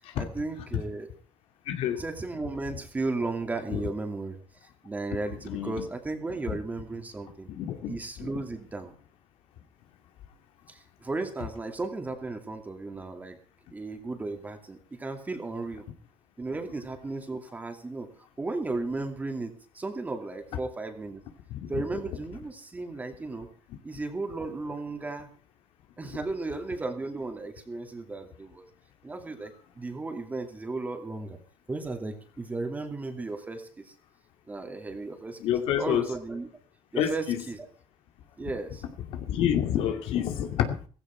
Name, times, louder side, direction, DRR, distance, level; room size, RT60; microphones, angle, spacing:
voice 1, 0.2-1.1 2.0-4.4 4.8-7.5 7.9-8.9 10.7-13.4 13.7-15.9 16.4-18.1 18.4-21.2 21.7-23.5 23.8-25.3 26.0-28.7 29.0-31.4 31.7-33.9 34.5-35.4 35.8-36.5 36.9-37.7 38.4-38.8, right 3 dB, 15° right, 5 dB, 2.5 m, -35 dB
voice 2, 1.7-2.0 3.7-3.8 5.5-5.9 7.6-8.3 21.5-21.8 35.4-36.1 37.0-37.4 39.1-40.8, left 10 dB, 80° left, 6 dB, 2.4 m, -28 dB
16.0 x 15.5 x 4.6 m, 0.39 s
cardioid pair, 145°, 10 cm